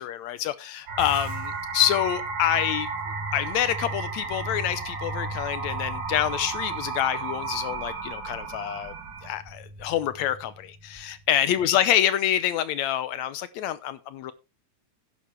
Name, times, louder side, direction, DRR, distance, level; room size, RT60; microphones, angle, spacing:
voice 1, 0.0-2.9 3.3-8.9 9.2-14.3, left 11 dB, 75° left, 1.8 m, -27 dB
sound 1, 0.9-9.3, right 4 dB, 80° right, 4.5 m, -34 dB
sound 2, 1.0-11.6, right 1 dB, 10° right, 2.7 m, -40 dB
11.5 x 9.4 x 3.4 m
omnidirectional pair, 3.6 m